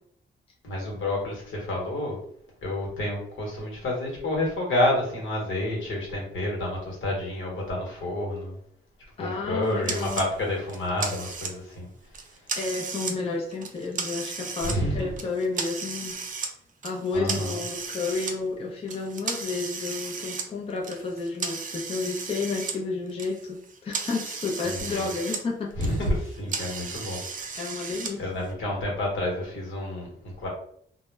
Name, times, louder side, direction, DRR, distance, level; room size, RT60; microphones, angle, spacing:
voice 1, 0.6-2.2 2.6-8.5 9.2-11.9 14.6-15.1 17.1-17.6 24.6-25.1 25.8-27.6 28.2-30.5, left 1 dB, 80° left, -2 dB, 1.0 m, -29 dB
voice 2, 9.2-10.3 12.6-16.2 16.8-25.7 27.0-27.1 27.6-28.2, left 3 dB, 30° left, -2 dB, 0.5 m, -31 dB
sound 1, 9.9-10.3 10.7-11.8 12.1-13.2 13.5-14.8 15.2-16.5 16.8-18.3 18.9-22.8 23.1-25.4 25.7-28.1, right 5 dB, 40° right, 0.4 m, -34 dB
2.1 x 2.1 x 3.2 m, 0.65 s
cardioid pair, 110°, 20 cm